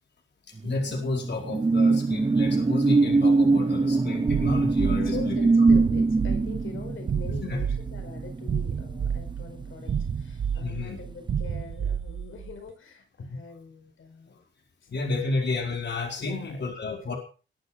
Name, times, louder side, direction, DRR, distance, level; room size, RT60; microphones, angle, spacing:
voice 1, 0.6-5.4 7.4-7.6 10.5-11.0 13.3-13.4 14.9-17.2, left 3 dB, 60° left, 2 dB, 4.5 m, -31 dB
sound 1, 0.6-9.6 10.0-10.2, right 3 dB, 25° right, 0.7 m, -23 dB
sound 2, 4.3-12.5, right 7 dB, 75° right, 1.5 m, -30 dB
voice 2, 5.0-14.4 14.8-15.4 16.2-17.2, left 5 dB, 90° left, 6 dB, 5.2 m, -43 dB
21.0 x 10.0 x 6.0 m, 0.38 s
wide cardioid pair, 130°, 20 cm